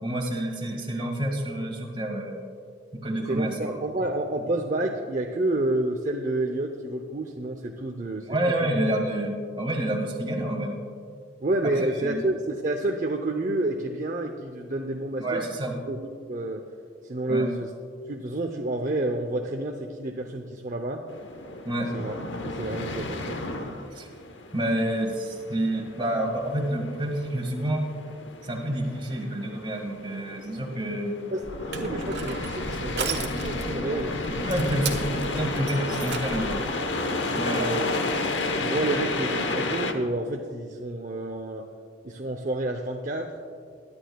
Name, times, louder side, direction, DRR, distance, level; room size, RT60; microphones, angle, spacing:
voice 1, 0.0-2.4 2.9-3.7 8.3-10.8 11.6-12.2 15.2-15.7 17.3-17.5 21.6-21.9 23.9-24.1 24.5-27.9 28.4-31.2 34.3-36.6 37.3-37.8, right 1 dB, 25° right, 1 dB, 1.8 m, -28 dB
voice 2, 3.3-8.3 8.6-8.7 11.4-15.5 15.9-16.0 16.3-16.6 17.0-17.7 18.1-21.1 21.9-22.1 22.4-23.4 31.3-31.4 31.7-34.2 37.2-37.9 38.4-41.7 42.0-43.4, right 2 dB, 40° right, 3 dB, 0.7 m, -29 dB
sound 1, 21.1-39.9, left 2 dB, 75° left, 0.9 m, -32 dB
Crushing, 31.4-36.6, right 4 dB, 60° right, 1.4 m, -36 dB
22.5 x 11.5 x 2.3 m, 2.2 s
head